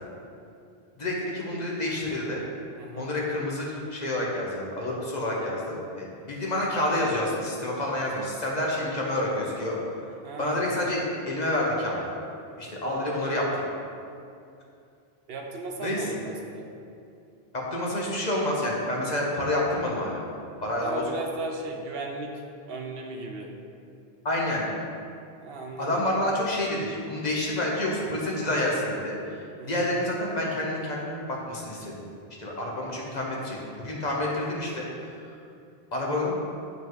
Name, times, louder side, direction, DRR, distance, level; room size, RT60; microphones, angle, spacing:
voice 1, 1.0-2.4 3.0-9.8 10.4-12.1 12.6-13.6 15.8-16.0 17.5-20.2 20.6-21.0 24.2-24.7 25.8-29.4 29.7-32.0 32.4-33.6 33.8-35.1 35.9-36.3, left 1 dB, 45° left, -3 dB, 1.2 m, -28 dB
voice 2, 2.8-3.1 10.2-10.8 15.3-16.7 20.8-22.4 22.7-23.5 25.4-26.1 29.6-29.9, right 2 dB, 70° right, 2 dB, 0.9 m, -36 dB
7.4 x 5.4 x 4.0 m, 2.5 s
omnidirectional pair, 1.0 m